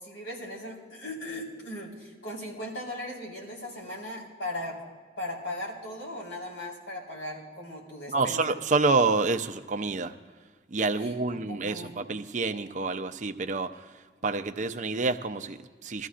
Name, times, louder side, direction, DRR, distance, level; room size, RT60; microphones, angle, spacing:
voice 1, 0.0-4.8 5.2-8.5 11.0-12.0, left 1 dB, 85° left, -4 dB, 4.4 m, -38 dB
voice 2, 8.1-10.1 10.7-13.9 14.2-16.1, right 3 dB, 40° right, 8 dB, 0.6 m, -28 dB
22.0 x 14.0 x 2.5 m, 1.5 s
head